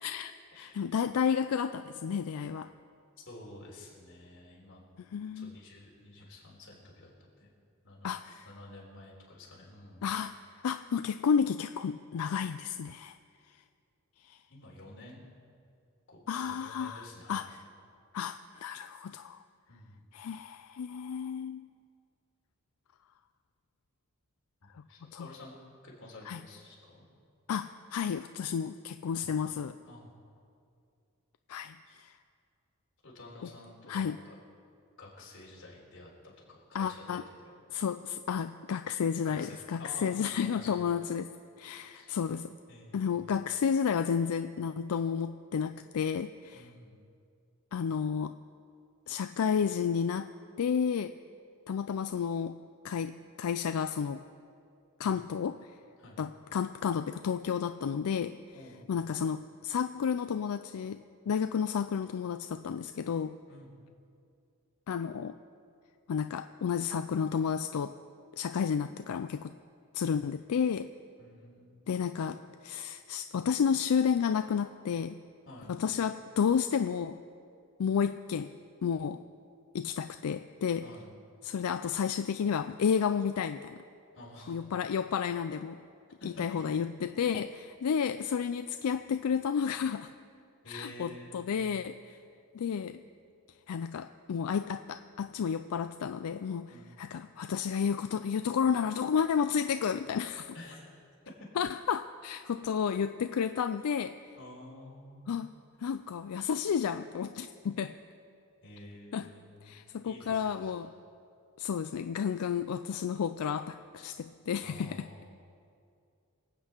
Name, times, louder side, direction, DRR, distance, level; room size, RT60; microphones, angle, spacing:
voice 1, 0.0-2.7 5.0-5.6 8.0-8.5 10.0-10.4 10.6-13.2 14.2-14.4 16.3-17.6 18.1-19.4 20.1-21.7 24.7-24.8 25.1-25.3 26.2-26.4 27.5-29.8 31.5-32.1 33.4-33.5 33.9-34.2 36.7-37.2 37.7-41.3 41.6-42.5 42.9-46.7 47.7-48.4 49.1-51.1 51.7-52.6 52.8-54.2 55.0-55.7 56.2-58.4 58.9-63.4 64.9-65.4 66.1-68.0 68.3-69.5 69.9-70.9 71.9-75.2 75.7-77.2 77.8-78.5 78.8-79.2 79.7-80.9 81.4-83.8 84.5-85.8 86.2-90.1 90.7-92.2 92.5-93.0 93.7-100.6 101.6-104.2 105.3-105.5 105.8-108.0 109.1-109.3 109.6-110.9 111.6-115.1, left 7 dB, 90° left, 10 dB, 0.4 m, -31 dB
voice 2, 3.3-4.8 5.3-7.1 7.4-7.5 7.8-8.1 8.5-10.0 14.5-15.2 16.1-17.5 19.7-20.0 24.6-25.5 25.8-27.1 29.1-29.3 29.8-30.1 31.9-32.0 33.0-34.3 35.0-37.6 39.2-40.7 41.9-42.1 42.7-43.3 46.5-46.9 56.0-56.2 58.5-58.9 63.5-63.8 71.2-72.2 75.5-75.7 80.8-81.1 84.1-84.6 86.2-86.5 90.6-91.6 96.7-97.0 100.5-100.8 104.4-105.6 108.6-110.7 114.6-115.4, left 1 dB, 60° left, -4 dB, 3.8 m, -50 dB
25.0 x 8.5 x 4.5 m, 2.4 s
head